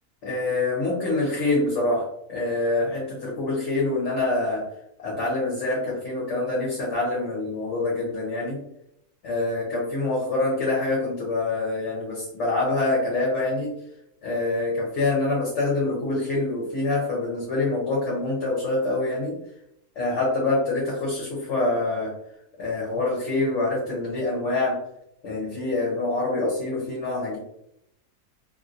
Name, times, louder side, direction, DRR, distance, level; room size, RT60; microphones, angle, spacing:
voice 1, 0.2-4.6 5.0-8.6 9.2-13.7 14.2-19.4 20.0-22.1 22.6-24.8 25.2-27.4, left 2 dB, 55° left, -5 dB, 1.0 m, -25 dB
2.9 x 2.6 x 2.4 m, 0.79 s
omnidirectional pair, 1.6 m